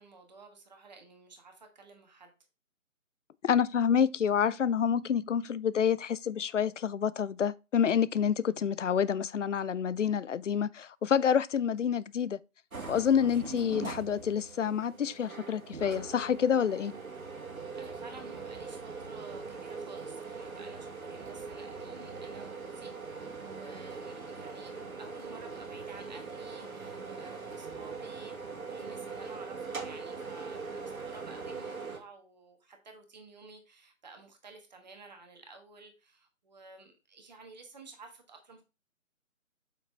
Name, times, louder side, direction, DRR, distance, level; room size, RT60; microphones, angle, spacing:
voice 1, 0.0-2.3 17.3-38.6, right 3 dB, 30° right, 1.4 m, -52 dB
voice 2, 3.4-12.4 12.9-16.9, left 8 dB, 60° left, 0.5 m, -28 dB
sound 1, 12.7-32.0, right 4 dB, 90° right, 2.1 m, -42 dB
7.1 x 6.0 x 3.3 m
figure-of-eight pair, 165°, 41 cm